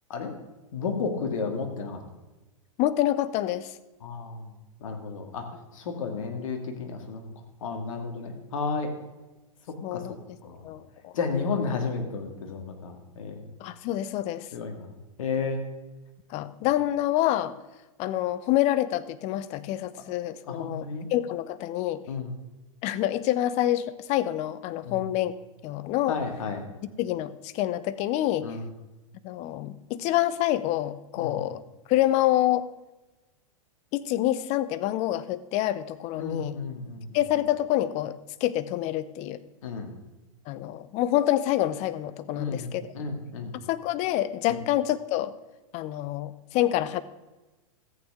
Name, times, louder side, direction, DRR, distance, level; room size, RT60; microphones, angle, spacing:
voice 1, 0.7-2.0 4.0-4.4 4.8-5.5 5.7-7.3 7.6-8.9 9.9-10.0 10.4-10.6 11.1-13.4 14.5-14.9 15.2-15.7 20.5-21.1 22.1-22.3 24.8-25.0 26.1-26.6 28.4-28.6 31.2-31.4 36.2-37.1 39.6-40.0 42.3-42.7 42.9-43.6, left 4 dB, 70° left, 4 dB, 2.0 m, -32 dB
voice 2, 2.8-3.7 9.8-10.4 10.6-11.1 13.6-14.5 16.3-17.5 18.0-22.0 22.8-25.3 25.6-26.2 27.0-28.5 29.2-31.6 31.9-32.7 33.9-36.6 37.1-39.4 40.5-42.9 43.7-45.3 45.7-47.0, left 13 dB, 40° left, 15 dB, 0.7 m, -27 dB
14.0 x 8.8 x 3.6 m, 1.1 s
hypercardioid pair, 105°, 18 cm